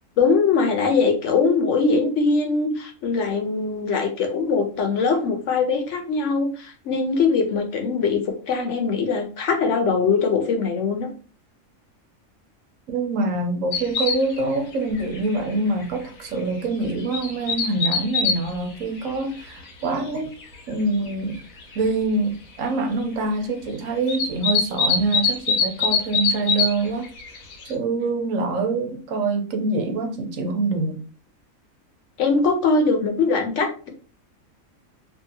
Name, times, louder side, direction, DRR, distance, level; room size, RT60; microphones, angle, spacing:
voice 1, 0.2-8.2 8.5-11.1 32.2-33.9, left 4 dB, 65° left, 0.9 m, -21 dB
voice 2, 12.9-20.3 20.7-21.4 21.8-27.1 27.7-31.0, right 3 dB, 75° right, 1.0 m, -25 dB
sound 1, 13.7-14.4 14.7-14.8 15.1-15.4 15.8-15.9 16.8-18.4 19.1-19.2 20.4-20.5 21.1-21.2 21.4-21.8 24.1-26.8 27.0-27.7, left 5 dB, 85° left, 1.2 m, -23 dB
2.7 x 2.6 x 2.7 m
omnidirectional pair, 1.4 m